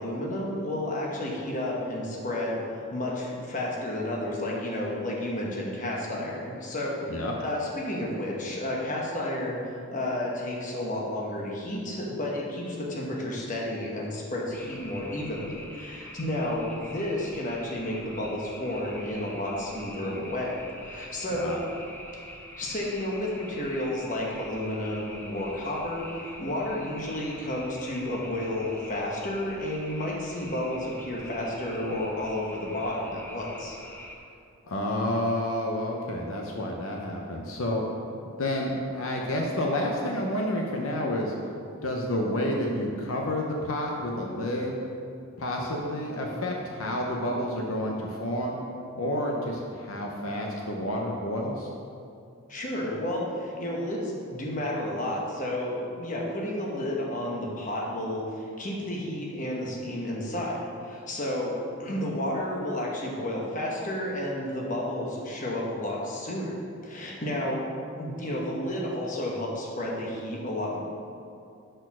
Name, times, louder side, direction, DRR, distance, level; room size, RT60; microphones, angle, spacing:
voice 1, 0.0-2.6 2.9-9.6 9.9-20.6 20.8-21.6 22.6-33.8 52.5-67.7 68.0-70.8, left 1 dB, 35° left, -3 dB, 1.1 m, -31 dB
sound 1, 14.5-34.2, left 1 dB, 10° left, 0.5 m, -45 dB
voice 2, 21.3-21.6 34.7-37.8 38.4-41.3 41.8-44.8 45.4-48.6 48.9-51.7, left 1 dB, 70° left, 0 dB, 0.7 m, -29 dB
6.3 x 4.5 x 6.0 m, 2.5 s
head